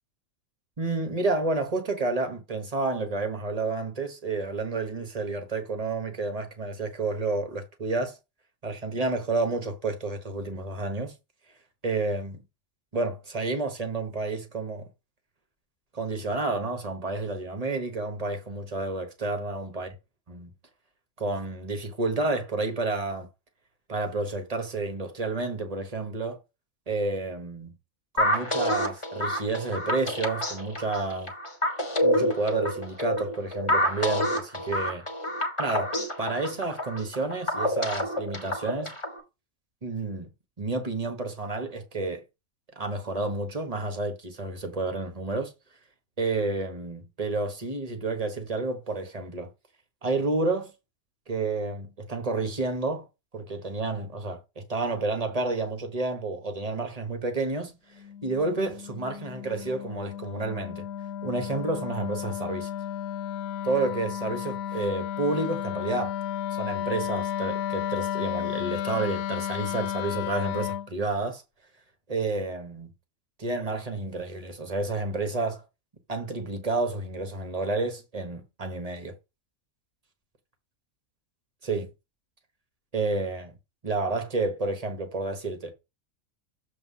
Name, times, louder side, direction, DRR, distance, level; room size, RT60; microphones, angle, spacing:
voice 1, 0.8-8.2 8.6-11.1 11.8-12.4 12.9-14.9 15.9-19.9 20.3-20.5 21.2-23.3 23.9-26.4 26.9-27.7 28.1-31.3 32.0-35.0 35.6-38.9 39.8-40.3 40.6-42.2 42.8-45.5 46.2-49.5 50.0-50.7 51.3-53.1 53.3-57.8 58.2-60.9 61.2-62.7 63.6-66.1 66.5-71.4 72.1-72.9 73.4-75.6 76.1-79.1 81.6-81.9 82.9-83.5 83.8-85.8, right 3 dB, 30° right, 1.2 m, -30 dB
sound 1, 28.2-39.2, equal, 20° left, 1.4 m, -28 dB
Wind instrument woodwind instrument, 58.0-70.9, left 10 dB, 80° left, 1.0 m, -33 dB
7.1 x 3.4 x 5.5 m
omnidirectional pair, 1.5 m